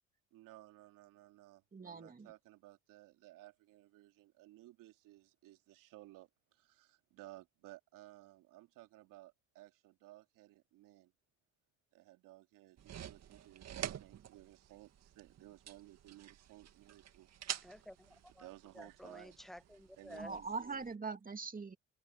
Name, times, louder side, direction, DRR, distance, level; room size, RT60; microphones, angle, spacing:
voice 1, 0.3-11.1 11.9-17.3 17.6-17.7 18.4-19.4 20.0-20.8, right 17 dB, 70° right, 2.8 m, -58 dB
voice 2, 1.7-2.3 20.2-21.8, right 4 dB, 25° right, 2.6 m, -42 dB
sound 1, 12.8-20.9, right 10 dB, 50° right, 2.1 m, -48 dB
voice 3, 17.6-18.5 18.7-20.4, left 1 dB, ahead, 1.2 m, -52 dB
supercardioid pair, 70°, 33 cm